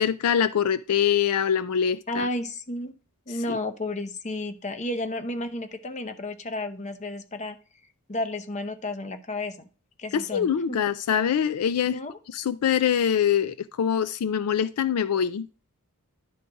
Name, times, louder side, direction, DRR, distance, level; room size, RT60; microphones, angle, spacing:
voice 1, 0.0-2.3 3.5-3.6 10.1-12.0 12.3-15.5, left 8 dB, 80° left, 0.4 m, -24 dB
voice 2, 2.1-2.9 3.3-7.6 8.1-9.7 10.0-10.8 11.9-12.2, left 2 dB, 30° left, 0.8 m, -32 dB
11.0 x 3.9 x 4.7 m
head